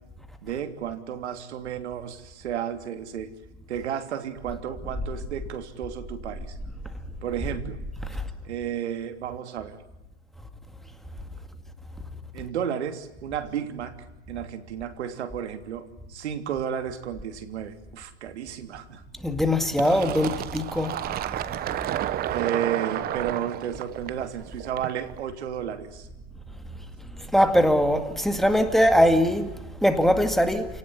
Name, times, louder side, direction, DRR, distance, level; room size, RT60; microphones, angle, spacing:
voice 1, 0.4-3.3 3.7-6.6 7.2-7.8 8.4-9.8 12.3-14.0 14.3-19.0 22.3-26.1, right 9 dB, 70° right, 3.1 m, -32 dB
voice 2, 19.2-21.0 27.3-29.5 29.8-30.7, equal, ahead, 2.1 m, -21 dB
Fill (with liquid), 19.8-25.2, right 13 dB, 25° right, 1.0 m, -31 dB
28.5 x 18.5 x 9.8 m
hypercardioid pair, 130°, 34 cm